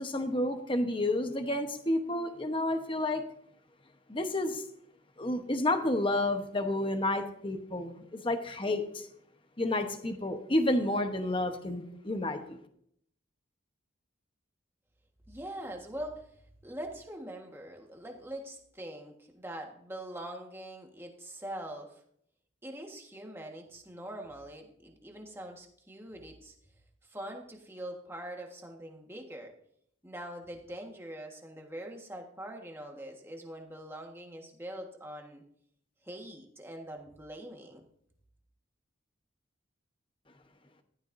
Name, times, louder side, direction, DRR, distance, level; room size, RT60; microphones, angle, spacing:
voice 1, 0.0-3.2 4.1-4.6 5.2-8.8 9.6-12.6, left 1 dB, 25° left, 6 dB, 1.0 m, -30 dB
voice 2, 15.3-16.3 16.6-22.0 22.6-26.5 27.0-29.5 30.0-35.4 36.0-37.8, right 1 dB, 10° right, 2 dB, 1.5 m, -43 dB
15.0 x 12.5 x 2.7 m, 0.68 s
head